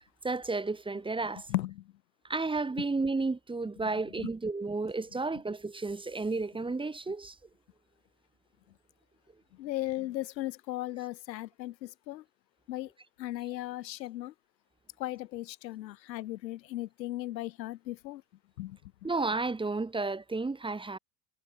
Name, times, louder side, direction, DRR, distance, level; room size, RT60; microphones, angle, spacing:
voice 1, 0.2-1.4 2.3-7.3 19.0-21.0, right 3 dB, 10° right, 1.0 m, -32 dB
voice 2, 1.5-1.8 4.2-4.3 9.6-12.2 12.7-12.9 13.2-14.3 15.0-18.2 18.6-18.8, left 15 dB, 90° left, 1.3 m, -36 dB
hypercardioid pair, 90°, 49 cm